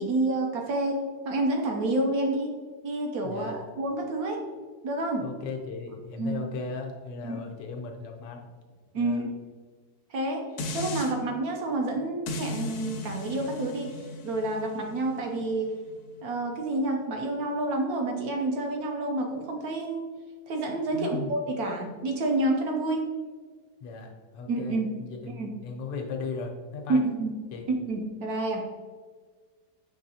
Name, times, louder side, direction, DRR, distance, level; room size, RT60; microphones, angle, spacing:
voice 1, 0.0-2.6 2.8-4.4 4.8-5.3 6.2-6.4 7.2-7.4 8.9-9.3 10.1-15.7 16.2-20.1 20.5-23.1 24.5-24.9 25.3-25.5 26.9-27.4 27.7-28.7, right 2 dB, 70° right, 2 dB, 1.0 m, -29 dB
voice 2, 3.2-3.6 5.2-8.4 8.9-9.2 20.9-21.3 23.8-27.0 27.5-27.6, left 4 dB, 90° left, 2 dB, 1.4 m, -37 dB
sound 1, 10.6-11.1 12.3-17.4 17.9-18.0, left 2 dB, 70° left, 1.0 m, -37 dB
6.3 x 3.1 x 2.7 m, 1.5 s
omnidirectional pair, 1.9 m